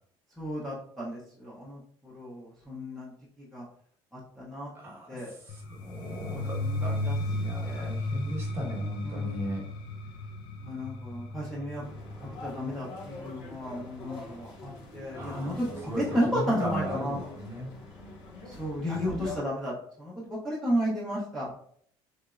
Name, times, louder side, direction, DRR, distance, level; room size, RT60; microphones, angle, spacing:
voice 1, 0.4-3.1 3.4-3.6 4.1-4.7 5.1-5.3 6.3-7.2 7.6-7.9 9.0-9.5 10.6-11.8 12.2-17.2 18.5-21.5, equal, 5° left, -9 dB, 0.7 m, -33 dB
voice 2, 4.7-9.6 15.1-17.7 18.9-19.1, equal, 25° right, -3 dB, 1.1 m, -37 dB
sound 1, 5.5-15.3, left 1 dB, 55° left, 0.4 m, -35 dB
sound 2, 11.8-19.4, left 3 dB, 85° left, 1.1 m, -44 dB
3.4 x 3.0 x 2.4 m, 0.62 s
cardioid pair, 155°, 10 cm